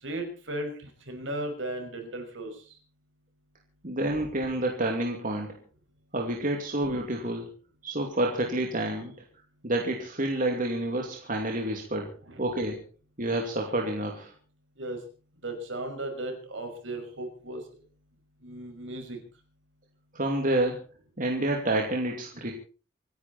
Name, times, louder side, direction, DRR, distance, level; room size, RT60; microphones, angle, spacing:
voice 1, 0.0-2.5 12.2-12.4 14.8-15.0 15.4-17.6 18.4-19.2, right 1 dB, 65° right, 4 dB, 6.0 m, -36 dB
voice 2, 3.8-5.6 6.1-7.5 7.8-9.1 9.6-12.1 12.4-12.8 13.2-14.3 20.1-20.8 21.2-22.5, right 1 dB, 40° right, 1 dB, 2.7 m, -28 dB
26.5 x 11.0 x 4.3 m, 0.38 s
head